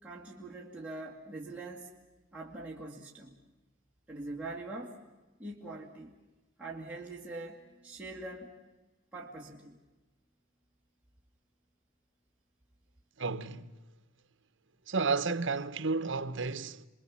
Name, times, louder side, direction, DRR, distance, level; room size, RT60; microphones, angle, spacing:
voice 1, 0.0-1.9 2.3-3.4 4.1-5.0 5.4-6.1 6.6-8.6 9.1-9.8, right 2 dB, 5° right, 2.1 m, -43 dB
voice 2, 13.2-13.7 14.9-16.9, right 4 dB, 60° right, 0.9 m, -32 dB
28.5 x 21.5 x 7.3 m
head